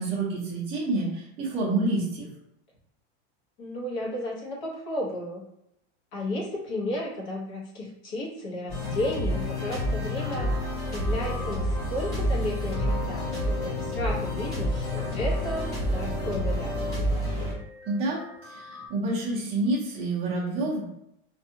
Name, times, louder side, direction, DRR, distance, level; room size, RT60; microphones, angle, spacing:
voice 1, 0.0-2.3 17.9-20.8, right 2 dB, 20° right, -6 dB, 0.6 m, -28 dB
voice 2, 3.6-5.4 6.1-10.5 10.9-17.0, left 1 dB, 45° left, -3 dB, 1.0 m, -33 dB
sound 1, 8.7-18.9, equal, 10° left, 0.8 m, -29 dB
2.6 x 2.3 x 2.7 m, 0.78 s
supercardioid pair, 175°, 31 cm